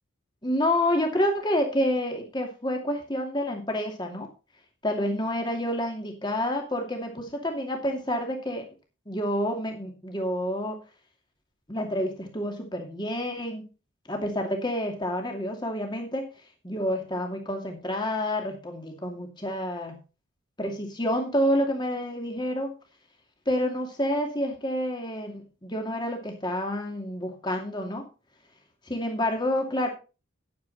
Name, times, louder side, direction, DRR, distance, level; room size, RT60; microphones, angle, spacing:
voice 1, 0.4-4.3 4.8-8.7 9.1-10.8 11.7-13.6 14.1-16.3 16.6-19.9 20.6-22.7 23.5-28.1 28.9-29.9, left 1 dB, 20° left, 3 dB, 2.5 m, -28 dB
9.8 x 9.5 x 4.1 m, 0.32 s
head